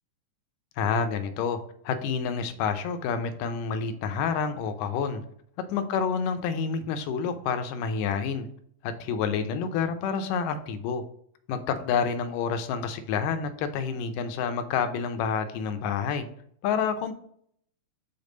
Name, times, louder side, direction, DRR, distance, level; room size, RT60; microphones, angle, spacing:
voice 1, 0.8-1.6 1.9-5.2 5.7-8.5 8.8-11.0 11.5-16.3 16.6-17.1, left 6 dB, 80° left, 9 dB, 2.2 m, -28 dB
5.3 x 4.8 x 3.8 m, 0.67 s
omnidirectional pair, 3.8 m